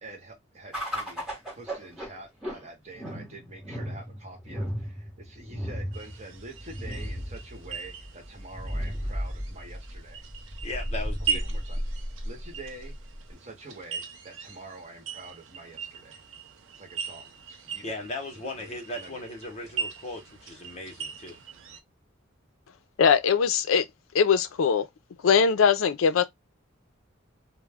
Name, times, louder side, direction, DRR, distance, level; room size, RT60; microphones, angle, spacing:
voice 1, 0.0-10.2 11.3-11.8 12.2-13.0 13.3-16.2 16.8-17.9 18.3-19.2 19.6-19.8, right 2 dB, 35° right, 1.0 m, -46 dB
sound 1, 0.7-13.3, equal, 5° right, 0.9 m, -35 dB
sound 2, 5.9-21.8, right 7 dB, 70° right, 0.5 m, -39 dB
voice 2, 10.6-11.4 17.8-21.4, left 2 dB, 30° left, 0.7 m, -37 dB
voice 3, 23.0-23.8 24.1-24.9 25.2-26.2, left 6 dB, 80° left, 0.4 m, -21 dB
2.2 x 2.0 x 3.3 m
head